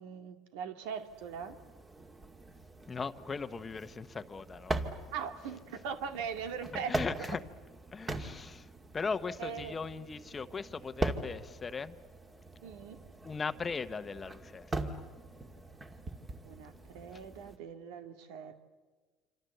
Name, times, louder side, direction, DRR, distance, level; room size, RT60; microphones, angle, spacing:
voice 1, 0.0-1.6 5.1-7.0 8.1-8.2 9.4-9.8 12.6-13.0 16.4-18.5, right 7 dB, 90° right, 2.2 m, -40 dB
sound 1, 1.0-17.6, right 2 dB, 20° right, 2.2 m, -41 dB
voice 2, 2.9-4.8 6.9-7.4 7.9-8.7 8.9-12.0 13.2-15.0, left 5 dB, 25° left, 1.0 m, -38 dB
27.5 x 25.5 x 7.9 m
cardioid pair, 125°, 0 cm